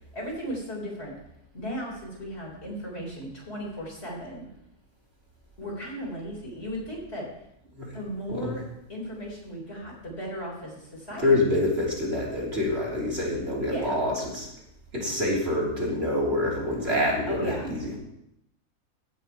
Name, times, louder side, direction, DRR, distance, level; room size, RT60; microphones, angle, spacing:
voice 1, 0.1-1.1 1.5-4.5 5.6-7.3 7.9-8.6 8.9-11.4 13.6-14.0 17.3-17.7, equal, 45° left, -3 dB, 4.2 m, -36 dB
voice 2, 11.2-14.5 14.9-18.1, left 1 dB, 45° right, -5 dB, 3.7 m, -26 dB
16.0 x 9.1 x 4.7 m, 0.81 s
omnidirectional pair, 1.5 m